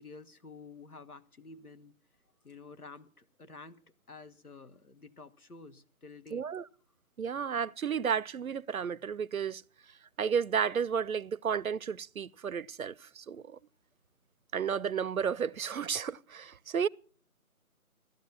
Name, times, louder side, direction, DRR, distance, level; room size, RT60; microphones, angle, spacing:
voice 1, 0.0-1.9 2.4-6.5, left 4 dB, 90° left, 1.4 m, -50 dB
voice 2, 6.3-6.6 7.2-9.6 10.2-13.6 14.5-16.9, right 7 dB, 70° right, 0.6 m, -32 dB
16.0 x 12.5 x 5.8 m
figure-of-eight pair, 165°, 43 cm